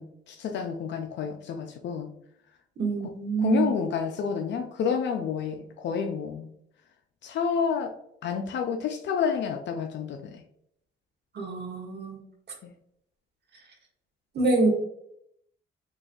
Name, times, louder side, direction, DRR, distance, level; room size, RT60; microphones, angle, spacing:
voice 1, 0.0-2.1 3.4-6.5 7.2-8.0 8.2-10.4 12.6-12.7, left 7 dB, 65° left, 5 dB, 0.5 m, -29 dB
voice 2, 2.8-3.7 11.3-12.2 14.3-14.7, right 3 dB, 55° right, 1 dB, 1.2 m, -25 dB
3.9 x 3.0 x 2.5 m, 0.72 s
cardioid pair, 90°, 20 cm